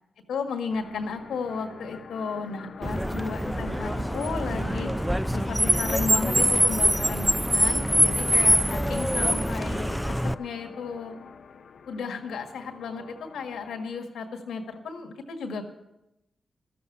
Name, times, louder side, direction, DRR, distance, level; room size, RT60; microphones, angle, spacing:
voice 1, 0.3-4.9 5.3-11.1 11.9-15.6, left 4 dB, 90° left, 5 dB, 1.7 m, -34 dB
sound 1, 0.7-14.0, left 6 dB, 70° left, 0.6 m, -45 dB
Car, 2.8-10.3, equal, 5° right, 0.5 m, -24 dB
13.5 x 7.8 x 9.7 m, 0.90 s
supercardioid pair, 45°, 0 cm